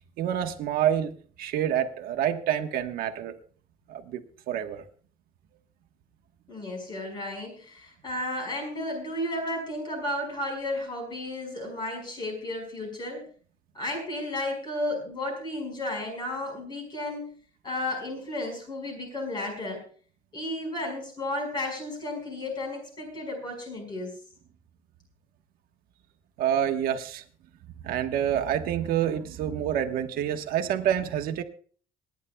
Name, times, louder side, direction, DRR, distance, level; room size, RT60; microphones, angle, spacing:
voice 1, 0.2-3.3 3.9-4.8 26.4-27.2 27.8-31.4, right 10 dB, 80° right, 6 dB, 1.2 m, -27 dB
voice 2, 6.5-13.2 13.7-17.3 17.6-19.8 20.3-24.1, left 1 dB, 30° left, 3 dB, 5.1 m, -33 dB
26.5 x 10.5 x 2.3 m, 0.43 s
cardioid pair, 175°, 15 cm